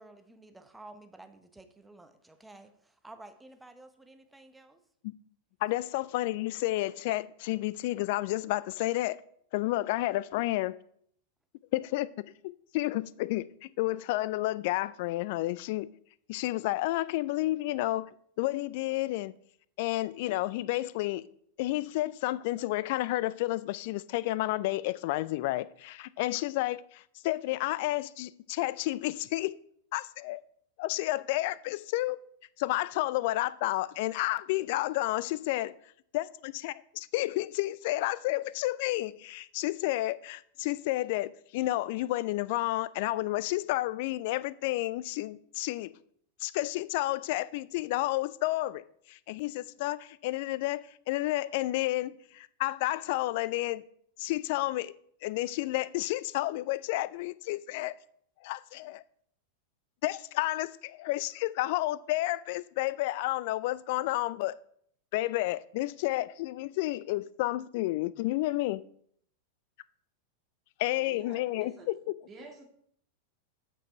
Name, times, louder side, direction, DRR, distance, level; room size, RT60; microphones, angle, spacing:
voice 1, 0.0-4.8, right 2 dB, 5° right, 0.8 m, -52 dB
voice 2, 5.6-9.2 9.5-10.8 11.7-12.1 12.4-15.9 16.3-18.1 18.4-19.3 19.8-21.3 21.6-29.5 29.9-30.4 30.8-32.2 32.6-35.7 36.1-45.9 46.4-53.8 54.2-54.9 55.2-57.9 58.4-59.0 60.0-64.6 65.1-68.8 70.8-72.1, left 17 dB, 50° left, 0.3 m, -31 dB
voice 3, 71.0-71.9 72.3-72.7, right 2 dB, 25° right, 1.8 m, -49 dB
8.4 x 5.4 x 4.4 m
figure-of-eight pair, 90°, 0 cm